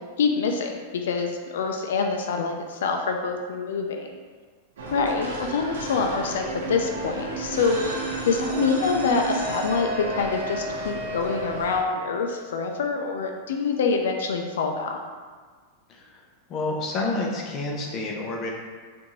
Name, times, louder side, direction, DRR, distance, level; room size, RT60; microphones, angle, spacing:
voice 1, 0.2-4.2 4.9-8.0 8.3-15.0, left 5 dB, 85° left, 4 dB, 0.3 m, -26 dB
sound 1, 4.8-11.8, right 2 dB, 85° right, 0.8 m, -33 dB
Wind instrument woodwind instrument, 8.5-12.7, right 2 dB, 45° right, 0.5 m, -36 dB
voice 2, 15.9-16.2 16.5-18.5, left 2 dB, 30° left, -1 dB, 0.6 m, -29 dB
4.3 x 2.5 x 3.0 m, 1.5 s
supercardioid pair, 155°, 0 cm